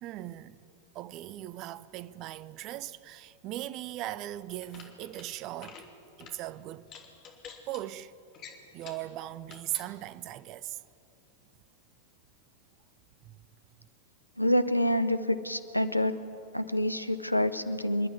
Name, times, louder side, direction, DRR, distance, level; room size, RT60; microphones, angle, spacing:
voice 1, 0.0-0.6 0.9-5.8 6.2-6.9 7.7-8.1 8.7-10.8 13.2-13.4, right 14 dB, 40° right, 0.7 m, -39 dB
sound 1, 4.6-5.3 5.5-5.9 6.2-6.4 6.9-7.8 8.3-9.1 9.5-9.9, left 7 dB, 35° left, 2.8 m, -48 dB
voice 2, 14.4-16.2 16.5-18.1, left 1 dB, 90° left, 0.9 m, -27 dB
27.0 x 12.0 x 9.7 m
figure-of-eight pair, 90°, 0 cm